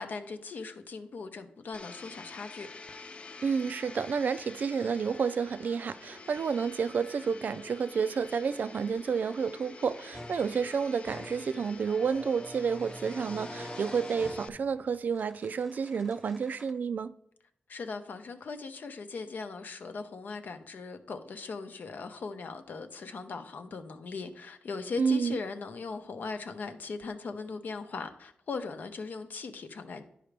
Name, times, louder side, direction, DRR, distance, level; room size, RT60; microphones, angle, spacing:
voice 1, 0.0-2.7 17.7-30.0, left 4 dB, 65° left, 0.7 m, -39 dB
Domestic sounds home sounds, 1.7-14.5, left 4 dB, 35° left, 0.4 m, -48 dB
voice 2, 3.4-17.2 25.0-25.4, right 6 dB, 60° right, 0.3 m, -30 dB
sound 1, 10.1-16.7, equal, 5° left, 1.0 m, -46 dB
11.0 x 4.9 x 3.3 m
wide cardioid pair, 130°, 3 cm